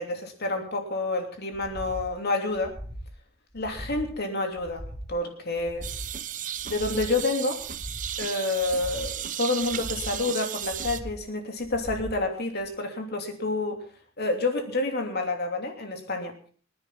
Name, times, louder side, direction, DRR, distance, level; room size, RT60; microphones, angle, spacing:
voice 1, 0.0-2.8 3.5-4.8 5.1-5.9 6.6-7.6 8.2-13.8 14.2-16.3, left 2 dB, 50° left, 4 dB, 2.9 m, -29 dB
sound 1, 1.5-2.1 2.5-3.1 3.5-4.1 4.5-5.1 5.5-6.1 6.5-7.1 7.5-8.1 8.6-9.1 9.6-10.2 10.6-11.2 11.6-12.2 12.6-12.7, equal, 15° right, 2.9 m, -40 dB
sound 2, 5.8-11.0, right 10 dB, 35° right, 0.7 m, -35 dB
24.5 x 10.0 x 3.8 m, 0.43 s
head